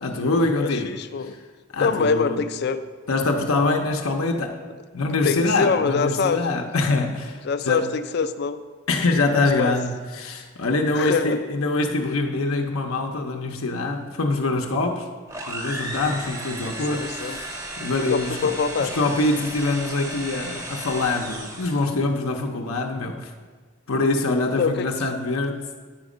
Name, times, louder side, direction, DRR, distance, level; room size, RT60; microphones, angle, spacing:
voice 1, 0.0-0.9 1.3-1.4 1.7-2.4 3.1-4.6 4.9-7.9 8.9-15.1 15.5-18.5 18.8-23.3 23.9-25.7, left 2 dB, 85° left, 2 dB, 0.7 m, -24 dB
voice 2, 0.6-1.4 1.8-2.8 5.2-6.7 7.4-8.6 9.6-9.8 10.9-11.4 16.9-17.4 18.1-18.9 24.6-25.1, left 5 dB, 50° left, 12 dB, 0.4 m, -24 dB
sound 1, 15.3-22.0, right 1 dB, 15° right, 0.6 m, -35 dB
9.0 x 5.2 x 4.9 m, 1.5 s
head